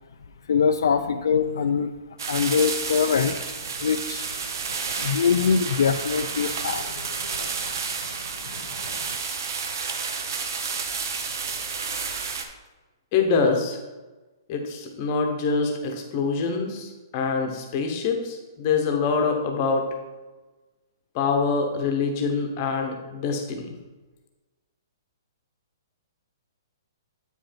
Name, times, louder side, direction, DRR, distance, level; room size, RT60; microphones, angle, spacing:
voice 1, 0.5-1.9 2.3-4.3 5.0-7.6 8.4-9.2, left 6 dB, 65° left, 7 dB, 0.4 m, -24 dB
sound 1, 2.2-12.4, right 5 dB, 55° right, 0.9 m, -31 dB
voice 2, 13.1-13.8 14.5-19.9 21.1-23.7, left 4 dB, 25° left, 3 dB, 0.9 m, -25 dB
8.5 x 5.3 x 4.4 m, 1.2 s
hypercardioid pair, 180°, 2 cm